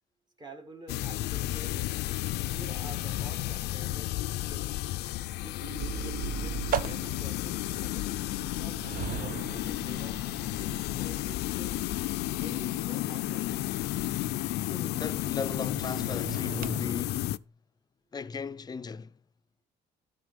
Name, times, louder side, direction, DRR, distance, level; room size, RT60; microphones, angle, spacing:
voice 1, 0.4-1.9 2.5-4.8 5.4-8.1 8.4-11.7 12.4-13.6, right 2 dB, 25° right, 1.9 m, -49 dB
sound 1, 0.9-17.4, left 16 dB, 80° left, 0.4 m, -32 dB
sound 2, 5.6-16.8, right 9 dB, 55° right, 0.9 m, -40 dB
voice 2, 14.7-17.4 18.1-19.1, left 5 dB, 25° left, 0.6 m, -37 dB
12.5 x 5.6 x 5.2 m
cardioid pair, 110°, 17 cm